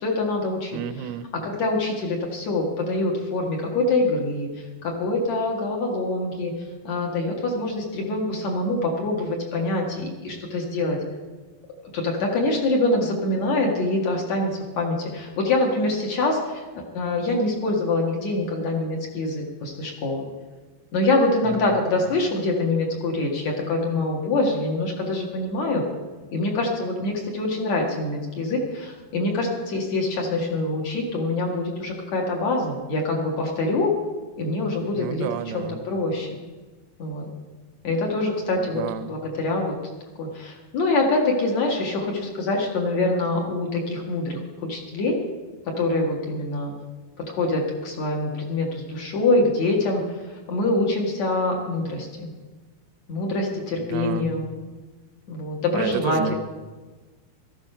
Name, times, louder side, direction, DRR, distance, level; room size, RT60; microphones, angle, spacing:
voice 1, 0.0-0.7 1.4-4.5 4.8-6.5 6.8-11.0 11.9-14.5 14.8-20.3 20.9-25.8 26.3-33.9 34.4-35.3 35.5-36.3 37.0-37.3 37.8-38.8 39.1-39.8 40.2-44.4 44.7-45.2 45.8-46.7 47.3-50.0 50.5-52.3 53.1-54.5 55.3-56.4, left 2 dB, 55° left, 0 dB, 2.6 m, -25 dB
voice 2, 0.7-1.3 21.4-21.8 35.0-35.8 38.6-39.2 53.8-54.3 55.7-56.4, right 9 dB, 85° right, 11 dB, 2.7 m, -31 dB
13.5 x 11.5 x 5.6 m, 1.3 s
omnidirectional pair, 4.5 m